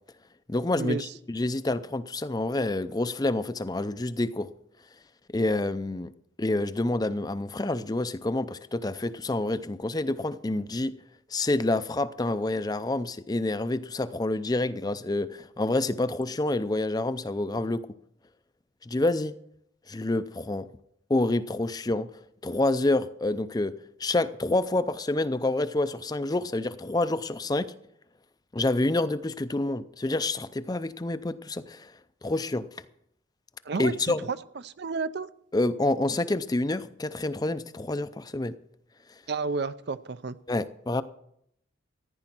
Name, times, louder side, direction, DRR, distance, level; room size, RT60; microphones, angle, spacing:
voice 1, 0.5-4.5 5.3-6.1 6.4-10.9 11.3-17.8 18.8-19.3 19.9-20.7 21.1-22.1 22.4-23.7 24.0-27.7 28.5-31.9 32.2-32.7 33.8-34.2 35.5-38.5 40.5-41.0, left 2 dB, 20° left, 0.5 m, -28 dB
voice 2, 33.6-34.4 34.6-35.3 39.3-40.4, right 4 dB, 55° right, 0.5 m, -31 dB
14.5 x 10.0 x 6.0 m
head